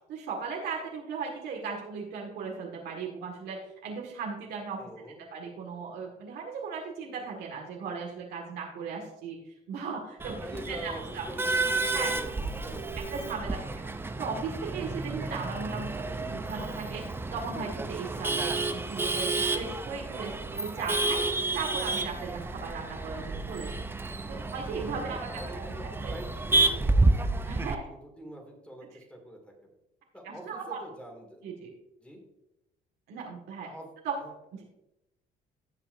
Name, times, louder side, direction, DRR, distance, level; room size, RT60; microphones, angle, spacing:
voice 1, 0.1-4.8 5.3-10.4 10.7-11.2 11.9-12.1 13.0-13.9 14.2-21.2 21.5-23.8 24.3-25.4 26.0-26.2 27.4-27.8 30.2-30.8 31.4-31.7 33.1-33.7 34.0-34.2 34.5-34.6, right 5 dB, 75° right, -1 dB, 1.9 m, -37 dB
voice 2, 4.8-5.3 10.3-13.6 20.1-20.5 25.0-27.3 27.7-29.7 30.1-31.4 32.0-32.2 33.6-33.9 34.2-34.3, equal, 5° left, 1 dB, 2.3 m, -44 dB
Male speech man speaking / Laughter / Chatter, 10.2-27.8, right 2 dB, 15° right, 0.6 m, -30 dB
17.0 x 5.8 x 2.6 m, 0.87 s
cardioid pair, 110°, 17 cm